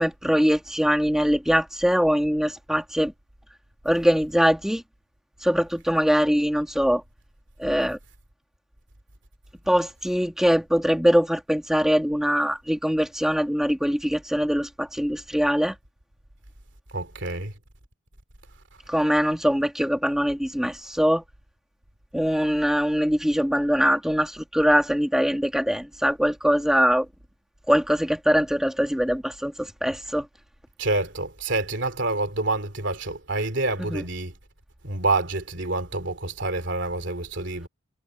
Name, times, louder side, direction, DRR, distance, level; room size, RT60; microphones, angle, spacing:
voice 1, 0.0-3.1 3.8-4.8 5.4-7.0 7.6-8.0 9.7-15.7 18.9-21.2 22.1-27.1 27.7-30.3 33.8-34.0, equal, ahead, 1.9 m, -22 dB
voice 2, 16.9-17.5 30.8-34.3 34.8-37.7, right 2 dB, 60° right, 3.0 m, -27 dB
head